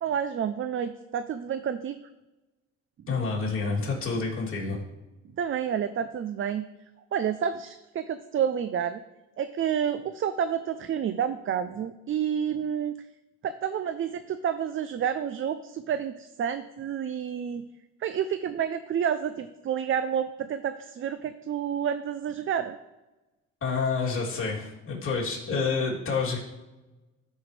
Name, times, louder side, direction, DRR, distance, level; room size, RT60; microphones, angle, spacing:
voice 1, 0.0-2.0 5.4-6.6 7.1-9.0 9.4-13.0 13.4-17.6 18.0-22.8, right 8 dB, 45° right, 11 dB, 0.5 m, -29 dB
voice 2, 3.1-4.8 23.6-26.4, left 4 dB, 45° left, -5 dB, 3.0 m, -28 dB
13.0 x 5.5 x 3.3 m, 1.1 s
cardioid pair, 90°, 30 cm